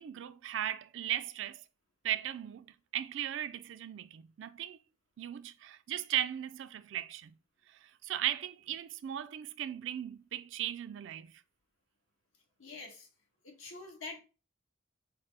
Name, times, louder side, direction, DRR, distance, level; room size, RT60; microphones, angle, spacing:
voice 1, 0.0-1.6 2.0-2.7 2.9-4.8 5.2-7.3 7.8-11.3, right 11 dB, 65° right, 0.3 m, -37 dB
voice 2, 12.6-13.1 13.4-14.2, left 3 dB, 85° left, 1.3 m, -45 dB
5.6 x 2.0 x 3.3 m
head